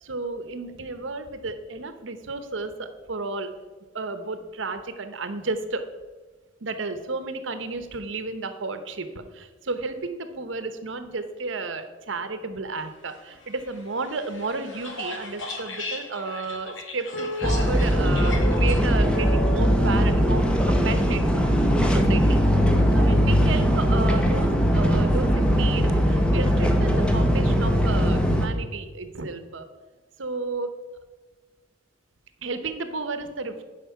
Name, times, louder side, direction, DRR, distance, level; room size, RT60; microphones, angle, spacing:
voice 1, 0.0-3.5 3.9-5.8 6.6-21.4 21.9-22.4 22.9-29.7 30.2-30.7 32.4-33.6, right 3 dB, 70° right, 9 dB, 0.9 m, -32 dB
sound 1, 13.4-18.8, left 3 dB, 70° left, 2.0 m, -37 dB
sound 2, 17.1-20.6, equal, 50° left, 2.0 m, -35 dB
sound 3, 17.4-28.5, equal, 5° left, 0.8 m, -20 dB
11.0 x 5.1 x 5.7 m, 1.3 s
head